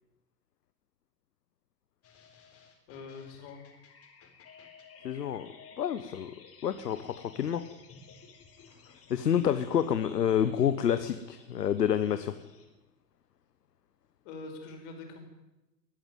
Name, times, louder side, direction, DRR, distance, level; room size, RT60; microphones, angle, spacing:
sound 1, 2.0-12.7, left 5 dB, 30° left, 4.2 m, -55 dB
voice 1, 2.9-3.6 14.2-15.2, left 3 dB, 45° left, 4 dB, 5.7 m, -44 dB
voice 2, 5.0-6.3 6.6-7.6 9.1-12.3, left 9 dB, 70° left, 11 dB, 1.2 m, -28 dB
20.5 x 14.0 x 9.4 m, 1.0 s
figure-of-eight pair, 90°, 50 cm